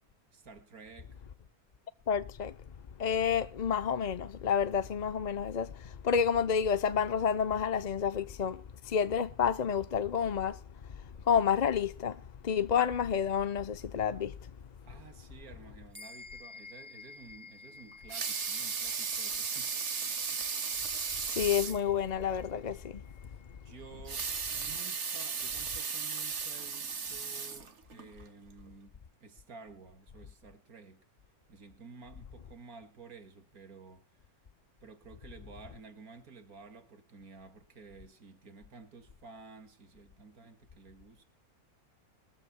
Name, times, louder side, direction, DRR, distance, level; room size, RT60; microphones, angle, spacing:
voice 1, 0.3-1.3 14.8-20.4 23.6-31.0 31.5-34.0 34.8-41.2, right 4 dB, 75° right, 2.5 m, -53 dB
voice 2, 2.1-2.5 3.0-10.6 11.3-14.3 21.2-23.0, left 7 dB, 45° left, 0.5 m, -29 dB
sound 1, 15.9-25.7, left 4 dB, 5° right, 1.7 m, -54 dB
Water tap faucet / Sink (filling or washing) / Liquid, 17.9-21.9 22.3-22.4 22.7-22.8 23.9-28.1 28.7-28.8, right 5 dB, 50° right, 1.7 m, -35 dB
22.5 x 14.5 x 2.3 m
omnidirectional pair, 1.6 m